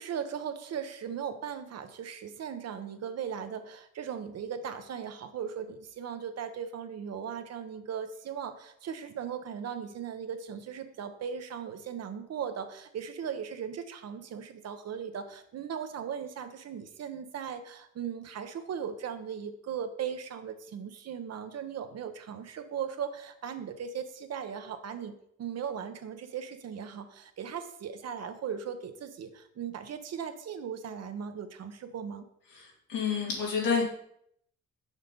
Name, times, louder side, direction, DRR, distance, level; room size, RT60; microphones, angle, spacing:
voice 1, 0.0-32.3, right 7 dB, 55° right, 8 dB, 0.8 m, -38 dB
voice 2, 32.9-33.8, left 5 dB, 90° left, -3 dB, 2.5 m, -28 dB
6.4 x 3.8 x 5.2 m, 0.70 s
cardioid pair, 90°, 30 cm